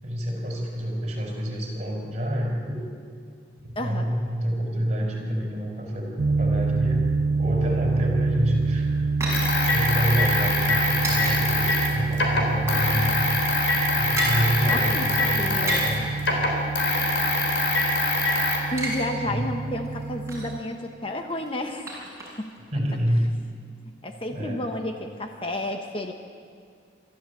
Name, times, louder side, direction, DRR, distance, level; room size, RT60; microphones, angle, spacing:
voice 1, 0.0-2.8 3.6-7.0 7.4-9.4 9.6-13.2 14.0-16.0 19.2-19.5 22.7-23.2 24.3-24.7, equal, 35° right, 0 dB, 5.1 m, -28 dB
sound 1, 6.2-20.6, right 4 dB, 85° right, 0.8 m, -27 dB
sound 2, 8.4-11.4 11.7-11.8 12.2-12.9 13.2-13.3 13.6-14.4 15.4-16.1 16.8-18.3 18.6-19.0 19.3-19.4 19.8-20.6 21.3-22.6 22.8-22.9, right 2 dB, 15° right, 5.9 m, -34 dB
sound 3, 9.3-18.6, left 2 dB, 85° left, 3.7 m, -24 dB
voice 2, 14.7-15.1 15.4-15.8 18.7-22.5 24.0-26.1, left 1 dB, 30° left, 5 dB, 1.1 m, -31 dB
24.5 x 13.5 x 8.3 m, 2.2 s
head